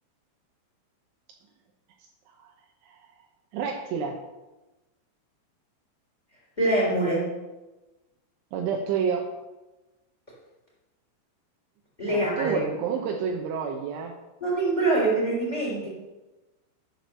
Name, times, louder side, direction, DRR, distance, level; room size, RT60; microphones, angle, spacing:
voice 1, 3.5-4.2 8.5-9.3 12.1-14.2, right 6 dB, 80° right, 3 dB, 3.0 m, -29 dB
voice 2, 6.6-7.3 12.0-12.6 14.4-15.9, right 2 dB, 10° left, -4 dB, 2.2 m, -24 dB
11.0 x 4.7 x 6.5 m, 1.1 s
omnidirectional pair, 5.6 m